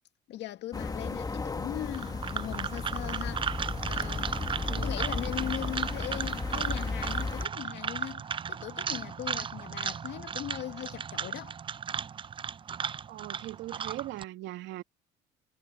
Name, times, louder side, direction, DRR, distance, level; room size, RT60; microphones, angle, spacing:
voice 1, 0.3-4.6 4.8-8.2 8.5-11.6, left 13 dB, 65° left, 2.1 m, -39 dB
sound 1, 0.7-7.5, left 3 dB, 20° left, 1.5 m, -34 dB
sound 2, 1.9-14.2, right 7 dB, 25° right, 0.5 m, -35 dB
voice 2, 13.1-14.8, right 16 dB, 70° right, 2.5 m, -40 dB
supercardioid pair, 95°, 20 cm